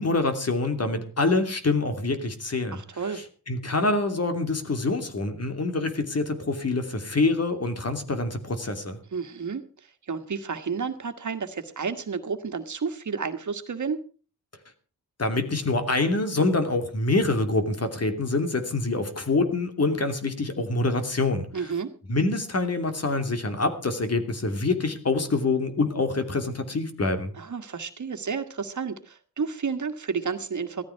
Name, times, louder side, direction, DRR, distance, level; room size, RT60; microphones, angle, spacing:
voice 1, 0.0-2.8 3.1-9.0 15.2-21.7 22.1-27.3, left 3 dB, 45° left, 7 dB, 2.9 m, -26 dB
voice 2, 2.7-3.2 9.1-9.6 10.1-14.0 21.5-21.9 27.4-30.8, right 5 dB, 55° right, 8 dB, 1.8 m, -31 dB
16.5 x 14.0 x 4.7 m, 0.38 s
wide cardioid pair, 105°, 34 cm